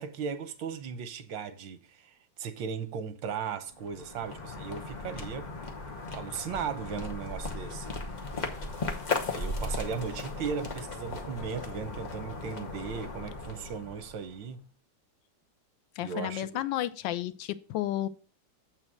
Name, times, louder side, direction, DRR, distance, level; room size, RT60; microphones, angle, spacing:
voice 1, 0.0-5.5 6.1-8.3 9.2-14.7 16.0-16.6, right 6 dB, 90° right, 1.6 m, -37 dB
sound 1, 3.7-14.4, left 3 dB, 30° left, 0.9 m, -37 dB
voice 2, 16.0-18.1, left 13 dB, 85° left, 1.3 m, -32 dB
7.8 x 4.2 x 6.2 m
omnidirectional pair, 2.0 m